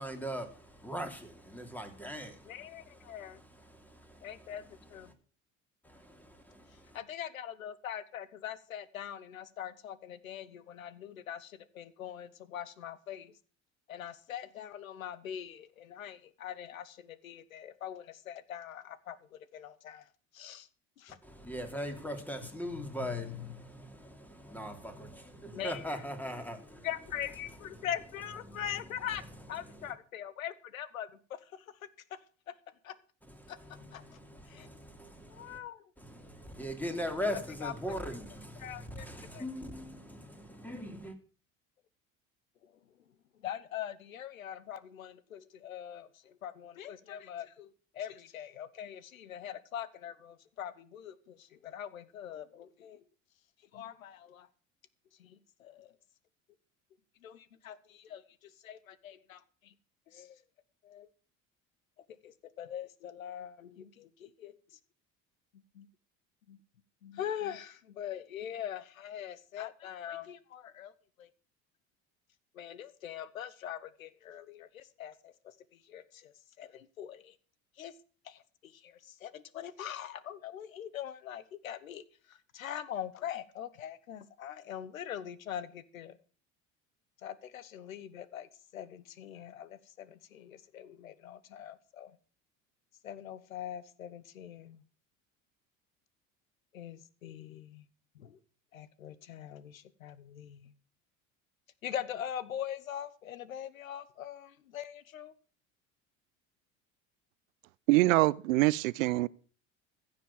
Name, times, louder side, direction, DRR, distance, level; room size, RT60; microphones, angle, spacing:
voice 1, 0.0-2.7 3.0-3.4 3.7-4.3 5.8-7.0 21.2-26.9 27.8-27.9 28.5-28.6 29.8-29.9 33.4-35.6 36.0-41.2, equal, 5° left, 3.1 m, -41 dB
voice 2, 2.4-3.4 4.2-5.1 6.9-13.4 13.9-20.1 20.3-20.7 21.0-21.2 22.7-23.5 25.5-26.0 26.8-32.2 32.5-32.6 32.8-33.0 33.5-34.0 34.5-34.7 35.2-35.8 37.3-37.9 38.6-39.1 39.3-39.4 42.6-42.7 43.4-53.0 53.7-54.5 55.2-55.9 57.2-59.7 60.1-60.4 60.8-61.1 62.2-64.8 65.7-65.9 66.5-66.6 67.0-70.9 71.2-71.3 72.5-75.5 75.8-76.3 76.6-77.3 77.8-77.9 78.2-86.2 87.2-88.5 88.7-92.2 93.0-94.8 96.7-97.9 98.1-98.4 98.7-100.7 101.8-105.3, left 10 dB, 85° left, 1.0 m, -43 dB
voice 3, 107.9-109.3, right 19 dB, 75° right, 0.6 m, -24 dB
15.5 x 6.9 x 7.3 m
hypercardioid pair, 70°, 40 cm